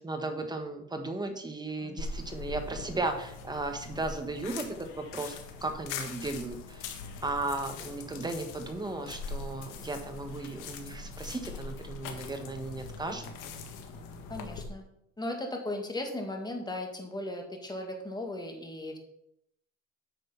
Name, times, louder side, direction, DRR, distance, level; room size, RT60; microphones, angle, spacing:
voice 1, 0.0-5.4 5.6-6.9 7.2-13.3, right 2 dB, 15° right, 6 dB, 1.4 m, -35 dB
sound 1, 2.0-14.6, left 4 dB, 85° left, 1.5 m, -42 dB
voice 2, 14.3-14.8 15.2-19.0, left 1 dB, 15° left, 2 dB, 2.0 m, -37 dB
8.9 x 6.2 x 5.7 m, 0.77 s
cardioid pair, 125°, 30 cm